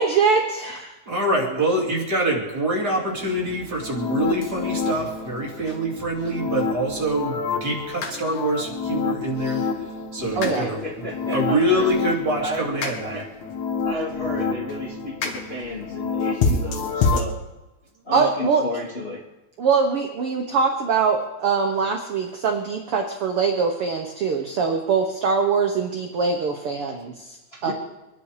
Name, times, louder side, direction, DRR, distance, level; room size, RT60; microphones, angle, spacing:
voice 1, 0.0-0.9 10.4-10.6 18.1-18.6 19.6-27.4 27.6-27.7, right 5 dB, 55° right, 3 dB, 1.8 m, -22 dB
voice 2, 1.1-9.6 10.1-13.2, right 1 dB, 30° right, -2 dB, 3.3 m, -25 dB
sound 1, 3.1-17.2, left 4 dB, 65° left, 3.0 m, -28 dB
voice 3, 10.2-11.9 12.4-13.3 13.8-17.4 18.1-19.2 27.5-27.7, left 1 dB, 20° left, -3 dB, 1.9 m, -32 dB
26.0 x 10.5 x 5.0 m, 1.0 s
omnidirectional pair, 3.8 m